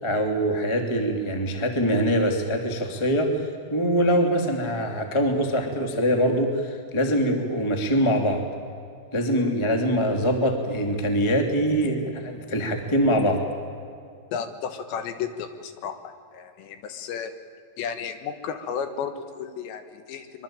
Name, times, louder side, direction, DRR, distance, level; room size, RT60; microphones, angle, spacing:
voice 1, 0.0-3.4 3.7-8.4 9.1-13.4, equal, 15° left, 4 dB, 1.2 m, -23 dB
voice 2, 14.3-17.3 17.8-20.4, left 7 dB, 70° left, 9 dB, 3.3 m, -33 dB
24.5 x 23.5 x 8.9 m, 2.4 s
omnidirectional pair, 5.7 m